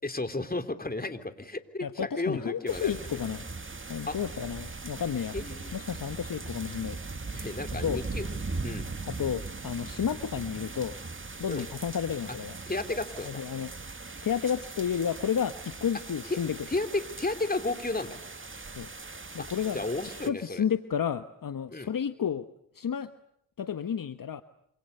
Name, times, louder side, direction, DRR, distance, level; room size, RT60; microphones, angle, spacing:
voice 1, 0.0-3.1 4.1-4.2 5.3-5.7 7.3-8.2 8.6-8.8 11.5-11.6 12.7-13.4 16.3-16.4 16.7-18.2 19.7-20.6 21.7-21.9, left 2 dB, 20° left, 8 dB, 3.5 m, -33 dB
voice 2, 1.8-3.4 3.9-5.4 5.7-7.0 7.8-8.0 9.0-10.9 11.4-12.6 13.2-13.7 14.2-16.6 18.7-18.9 19.3-19.8 20.3-22.5 22.7-23.1 23.6-24.4, left 8 dB, 50° left, 11 dB, 1.3 m, -31 dB
sound 1, 2.7-20.3, right 3 dB, 25° right, 2.4 m, -40 dB
27.5 x 27.0 x 6.8 m, 0.71 s
supercardioid pair, 45°, 44 cm